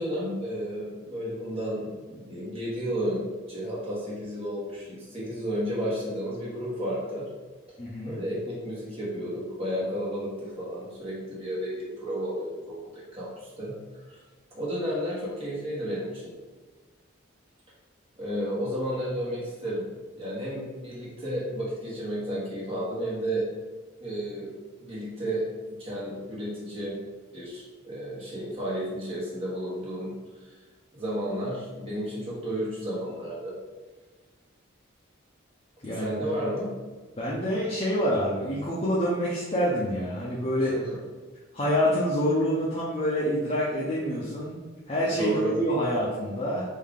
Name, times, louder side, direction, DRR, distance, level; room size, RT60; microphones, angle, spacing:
voice 1, 0.0-7.3 8.0-13.7 14.1-14.2 14.5-16.3 18.2-19.9 20.2-23.4 24.0-24.5 24.8-27.0 27.3-30.1 30.4-30.5 30.9-33.5 35.9-36.7 40.6-41.0 45.1-45.5, equal, 30° right, -7 dB, 1.2 m, -32 dB
voice 2, 7.8-8.2 35.8-36.2 37.2-40.8 41.5-44.5 44.9-46.6, equal, 30° left, -6 dB, 0.6 m, -27 dB
3.6 x 2.7 x 3.6 m, 1.3 s
head